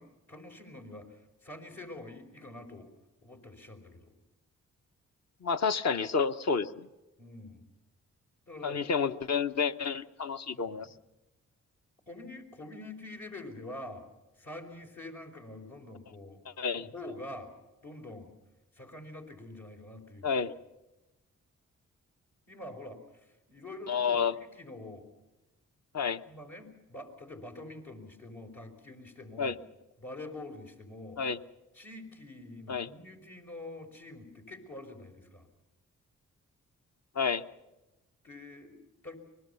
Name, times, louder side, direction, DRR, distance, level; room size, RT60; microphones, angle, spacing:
voice 1, 0.0-2.9 3.2-4.1 7.2-7.7 8.5-9.2 10.5-10.9 12.1-14.0 14.4-16.4 16.8-17.5 17.8-18.3 18.7-20.3 22.5-25.1 25.9-29.6 30.0-31.2 31.7-35.5 38.2-38.8 39.0-39.2, left 2 dB, 70° left, 4 dB, 4.5 m, -46 dB
voice 2, 5.4-6.9 8.6-10.9 16.6-16.9 20.2-20.5 23.9-24.3 25.9-26.2 29.4-29.6 31.2-31.4 32.7-32.9 37.1-37.4, left 6 dB, 55° left, 9 dB, 0.9 m, -30 dB
24.0 x 20.0 x 6.9 m, 1.0 s
supercardioid pair, 45°, 32 cm